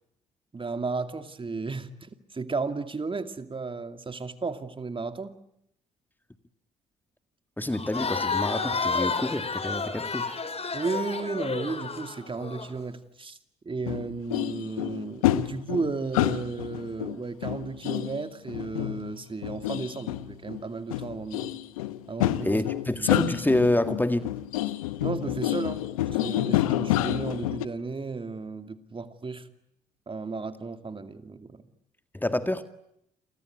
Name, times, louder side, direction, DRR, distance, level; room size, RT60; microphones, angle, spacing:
voice 1, 0.5-5.3 10.7-13.4 13.6-21.6 22.1-22.6 23.0-23.1 25.0-25.8 26.1-29.5 30.1-31.6, right 4 dB, 30° right, 2.4 m, -34 dB
voice 2, 7.6-10.3 22.4-24.3 32.1-32.6, left 1 dB, 10° left, 2.0 m, -27 dB
Crowd, 7.7-12.7, left 4 dB, 35° left, 4.2 m, -31 dB
sound 1, 13.9-20.6 20.9-27.7, left 14 dB, 90° left, 1.0 m, -29 dB
29.5 x 23.5 x 8.1 m
hypercardioid pair, 50°, 17 cm